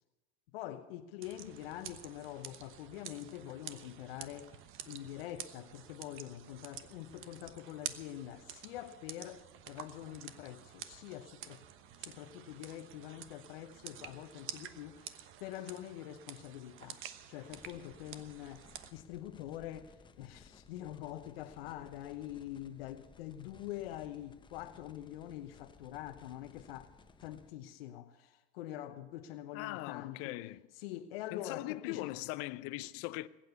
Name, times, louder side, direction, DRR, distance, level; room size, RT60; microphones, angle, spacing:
voice 1, 0.5-4.6 4.9-11.6 12.0-17.0 17.3-26.9 27.2-30.4 30.8-32.1, left 13 dB, 70° left, 0.9 m, -45 dB
sound 1, 1.2-18.9, right 10 dB, 40° right, 1.1 m, -49 dB
sound 2, 17.5-27.5, left 4 dB, 15° left, 0.9 m, -60 dB
voice 2, 29.5-30.6 31.3-33.3, left 18 dB, 50° left, 0.6 m, -40 dB
20.5 x 8.8 x 7.0 m
hypercardioid pair, 100°, 30 cm